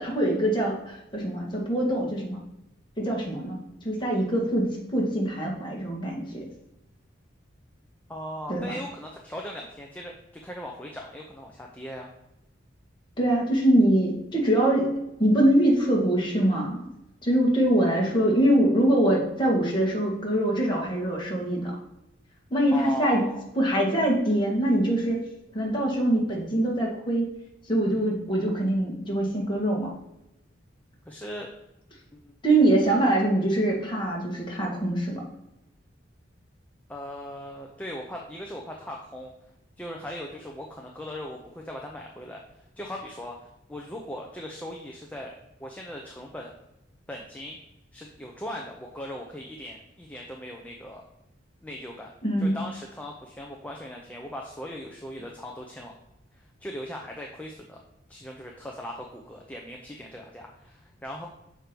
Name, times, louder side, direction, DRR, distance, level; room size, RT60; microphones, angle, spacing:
voice 1, 0.0-2.4 3.0-3.6 3.8-6.5 8.5-8.7 13.2-14.9 15.2-16.9 17.2-21.7 22.5-23.2 23.6-25.2 25.5-27.3 27.7-29.9 32.4-35.2 52.2-52.6, right 1 dB, 25° left, -2 dB, 1.9 m, -23 dB
voice 2, 8.1-12.1 22.7-23.4 31.1-31.5 32.1-32.3 36.9-39.3 39.8-42.4 42.8-43.4 43.7-45.3 45.6-46.5 47.1-47.6 47.9-51.0 51.6-52.1 52.4-55.9 56.3-57.8 58.1-61.3, equal, 10° left, 0 dB, 0.6 m, -39 dB
6.3 x 4.5 x 5.2 m, 0.89 s
head